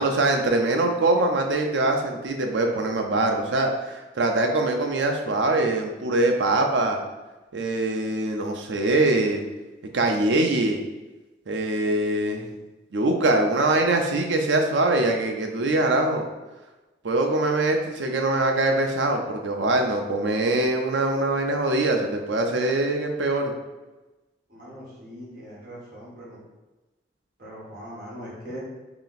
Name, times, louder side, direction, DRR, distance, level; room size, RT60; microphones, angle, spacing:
voice 1, 0.0-7.0 7.5-9.4 9.9-10.8 11.5-12.6 12.9-16.3 17.0-23.5, right 2 dB, 80° right, 3 dB, 0.6 m, -23 dB
voice 2, 24.5-26.5 27.4-28.6, equal, 45° right, -6 dB, 1.4 m, -40 dB
3.3 x 2.9 x 4.0 m, 1.1 s
head